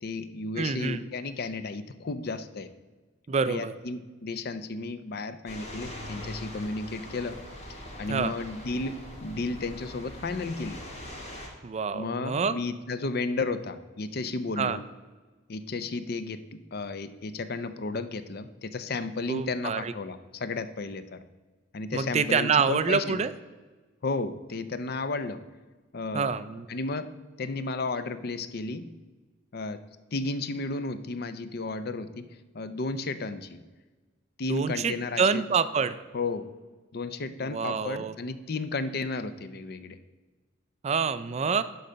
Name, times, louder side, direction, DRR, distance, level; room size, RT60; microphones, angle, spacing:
voice 1, 0.0-2.7 3.5-7.4 8.0-10.8 11.9-14.8 15.5-21.2 21.7-23.2 24.0-25.4 25.9-26.4 26.7-27.1 27.4-28.9 29.5-29.8 30.1-32.3 32.5-33.6 34.4-35.4 36.1-36.5 36.9-40.0, left 3 dB, 55° left, 12 dB, 0.5 m, -33 dB
voice 2, 0.6-1.0 3.3-3.7 8.1-8.3 11.6-12.6 14.6-14.8 19.3-19.9 21.9-23.3 26.1-26.7 34.5-36.0 37.5-38.1 40.8-41.6, right 5 dB, 35° right, 13 dB, 0.4 m, -27 dB
sound 1, 5.5-11.5, left 1 dB, 35° left, 1.9 m, -42 dB
11.5 x 4.0 x 5.6 m, 1.3 s
head